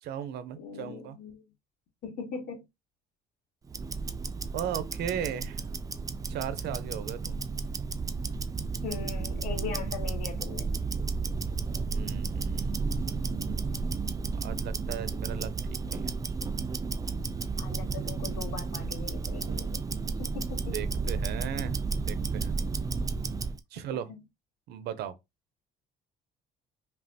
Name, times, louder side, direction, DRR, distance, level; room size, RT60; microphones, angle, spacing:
voice 1, 0.0-1.2 4.5-5.7 6.3-7.4 11.7-16.2 20.6-21.8 22.1-22.5 23.7-24.1 24.7-25.2, right 9 dB, 75° right, 0.6 m, -37 dB
voice 2, 0.6-1.4 2.0-2.6 8.8-10.7 17.6-19.9 20.2-20.7 24.1-24.2, left 5 dB, 55° left, 2.2 m, -40 dB
Tick-tock, 3.7-23.6, right 4 dB, 20° right, 0.4 m, -32 dB
5.3 x 2.4 x 2.8 m
cardioid pair, 110°, 17 cm